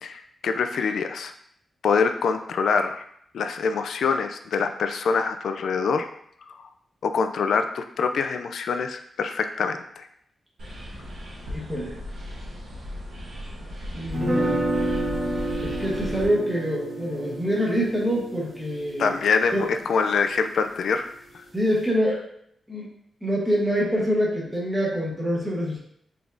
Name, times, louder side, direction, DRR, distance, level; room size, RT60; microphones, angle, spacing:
voice 1, 0.0-1.3 1.8-3.0 3.3-6.1 6.5-6.6 7.0-10.1 19.0-21.1 21.3-21.4, left 5 dB, 70° left, 7 dB, 0.3 m, -25 dB
sound 1, 10.6-16.3, equal, 70° right, 1.3 m, -36 dB
voice 2, 11.5-12.0 13.9-14.6 15.6-19.1 19.5-19.6 21.5-22.2 22.7-22.9 23.2-25.8, equal, 5° right, -5 dB, 1.1 m, -25 dB
sound 2, 14.1-20.1, right 1 dB, 35° right, 1.5 m, -29 dB
4.9 x 3.4 x 2.6 m, 0.70 s
wide cardioid pair, 180°, 0 cm